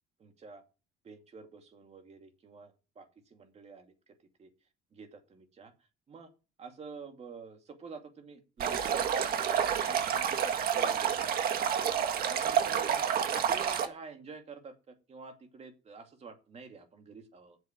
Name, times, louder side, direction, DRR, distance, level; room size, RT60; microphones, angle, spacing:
voice 1, 0.2-0.6 1.0-3.9 4.4-4.5 4.9-5.7 6.1-6.3 6.6-11.3 11.8-13.1 13.3-17.6, right 4 dB, 40° right, 5 dB, 2.5 m, -49 dB
Stream, 8.6-13.9, right 8 dB, 65° right, 1.7 m, -29 dB
7.6 x 7.3 x 8.1 m, 0.32 s
cardioid pair, 110°, 17 cm